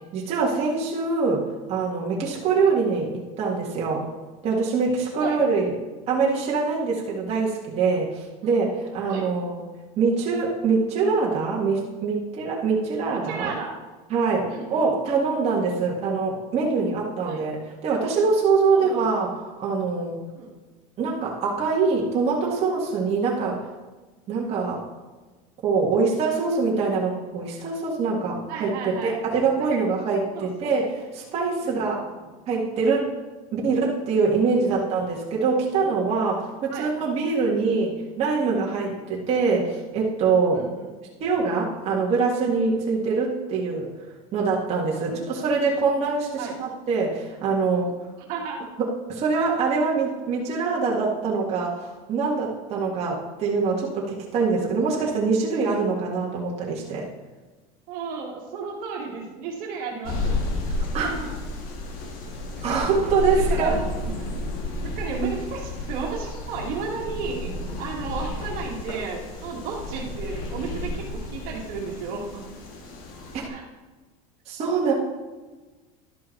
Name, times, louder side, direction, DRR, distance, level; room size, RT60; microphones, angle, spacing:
voice 1, 0.1-4.1 4.4-5.7 6.1-9.6 10.0-13.5 14.1-20.2 21.0-23.7 24.3-24.9 25.6-32.0 32.5-33.1 33.5-40.7 41.2-43.9 44.3-47.9 48.8-57.1 60.9-61.1 62.6-63.8 74.5-74.9, right 4 dB, 40° right, -4 dB, 1.9 m, -24 dB
voice 2, 13.1-13.7 14.5-14.9 17.2-17.4 18.7-19.1 20.3-20.5 28.5-29.1 29.7-29.8 30.3-30.8 31.6-32.0 34.6-35.0 36.7-36.9 37.4-37.6 38.9-39.0 40.5-40.9 45.1-45.2 46.4-46.6 48.3-48.6 57.9-60.4 61.0-61.3 62.6-62.7 63.0-63.1 63.5-64.3 65.0-67.5 67.8-72.5 73.5-73.6, right 5 dB, 60° right, -1 dB, 2.0 m, -33 dB
sound 1, 60.0-73.5, left 2 dB, 55° left, 1.9 m, -32 dB
12.0 x 5.4 x 4.6 m, 1.3 s
supercardioid pair, 135°, 17 cm